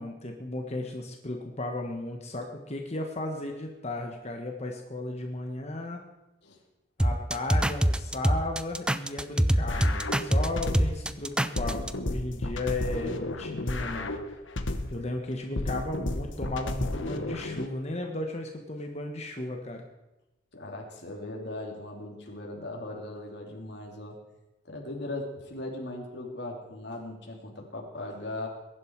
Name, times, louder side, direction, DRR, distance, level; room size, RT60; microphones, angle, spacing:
voice 1, 0.0-6.0 7.0-14.1 14.9-19.8, left 2 dB, 35° left, 2 dB, 1.5 m, -35 dB
sound 1, 7.0-11.9, equal, 5° right, 0.4 m, -25 dB
sound 2, 9.7-11.1 11.6-15.1 15.6-17.7, left 2 dB, 80° left, 1.2 m, -32 dB
voice 2, 20.5-24.2 24.7-28.5, left 2 dB, 60° left, 0 dB, 3.2 m, -38 dB
21.5 x 11.0 x 4.7 m, 0.99 s
head